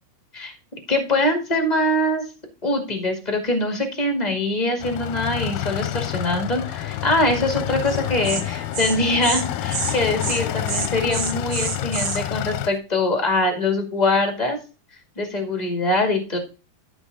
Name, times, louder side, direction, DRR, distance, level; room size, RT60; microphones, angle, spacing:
voice 1, 0.9-2.2 2.6-14.6 15.1-16.4, left 2 dB, 20° left, 4 dB, 1.0 m, -23 dB
sound 1, 4.8-12.7, left 13 dB, 80° left, 2.5 m, -28 dB
Insect, 7.9-8.0 8.2-8.4 8.7-8.9 9.2-9.4 9.7-9.9 10.2-10.4 10.7-12.2, right 6 dB, 75° right, 0.9 m, -27 dB
13.0 x 5.3 x 4.0 m, 0.32 s
omnidirectional pair, 4.7 m